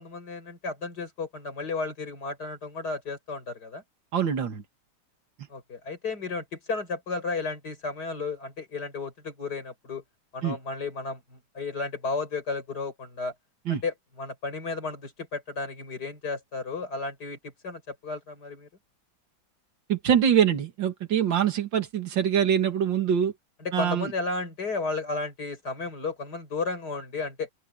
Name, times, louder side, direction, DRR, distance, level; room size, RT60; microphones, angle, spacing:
voice 1, 0.0-3.8 5.5-10.0 10.3-13.3 13.7-18.7 23.6-27.5, left 3 dB, 55° left, 6.4 m, -33 dB
voice 2, 4.1-4.6 10.4-10.6 13.7-13.8 19.9-23.3 23.7-24.1, right 8 dB, 80° right, 2.6 m, -24 dB
open air
omnidirectional pair, 2.0 m